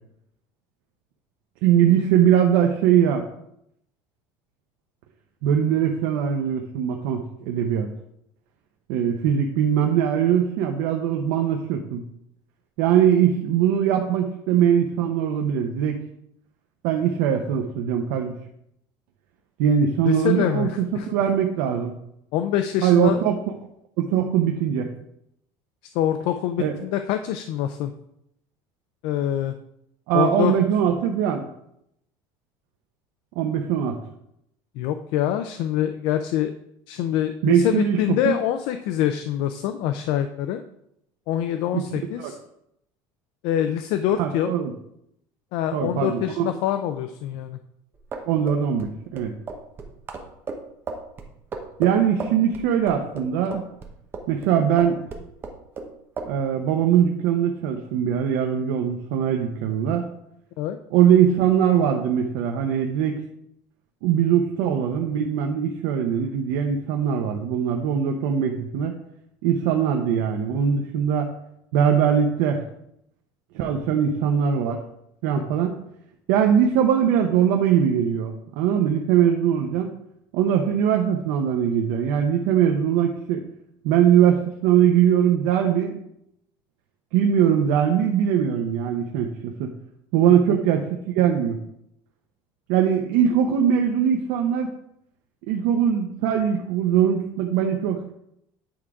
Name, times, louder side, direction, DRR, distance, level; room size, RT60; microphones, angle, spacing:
voice 1, 1.6-3.2 5.4-7.9 8.9-12.0 12.8-16.0 16.8-18.3 19.6-21.9 22.8-23.3 24.0-24.9 26.6-26.7 30.1-31.5 33.4-34.0 37.4-38.0 38.2-38.4 41.7-41.8 42.2-42.3 44.2-44.7 45.7-46.5 48.3-49.3 51.8-53.7 54.3-55.1 56.2-60.1 60.9-63.2 64.0-68.9 69.4-71.3 71.7-72.6 73.5-74.8 75.2-75.8 76.3-79.9 80.3-83.4 83.8-86.0 87.1-89.7 90.1-90.9 91.1-91.6 92.7-94.7 95.4-98.1, right 9 dB, 80° right, 3 dB, 0.7 m, -21 dB
voice 2, 20.1-21.1 22.3-23.2 25.9-27.9 29.0-29.6 30.1-30.5 34.8-36.5 36.9-40.6 41.3-42.4 43.4-44.6 45.5-47.6 60.6-60.8 75.3-75.4 90.2-90.6, left 11 dB, 65° left, 9 dB, 0.4 m, -25 dB
sound 1, 47.9-54.5 54.8-55.9 56.2-56.3, right 4 dB, 20° right, 0.8 m, -35 dB
8.9 x 3.7 x 4.7 m, 0.77 s
cardioid pair, 170°, 10 cm